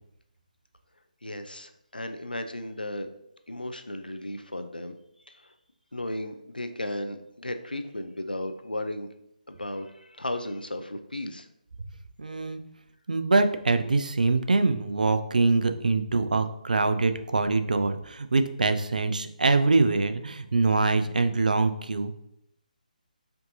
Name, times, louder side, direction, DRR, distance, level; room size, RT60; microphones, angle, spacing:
voice 1, 1.2-3.1 3.5-4.9 5.3-5.5 5.9-9.1 9.5-11.5, left 1 dB, 85° left, 8 dB, 0.4 m, -35 dB
voice 2, 12.2-12.6 13.1-22.1, right 3 dB, 65° right, 9 dB, 0.4 m, -24 dB
4.4 x 2.6 x 2.6 m, 0.78 s
figure-of-eight pair, 145°, 5 cm